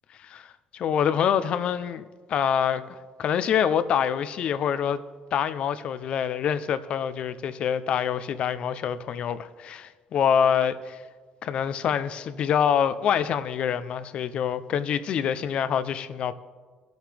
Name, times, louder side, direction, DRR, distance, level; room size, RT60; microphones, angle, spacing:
voice 1, 0.7-5.0 5.3-11.0 11.4-16.3, left 8 dB, 50° left, 0.6 m, -26 dB
22.5 x 7.9 x 3.4 m
cardioid pair, 130°, 2 cm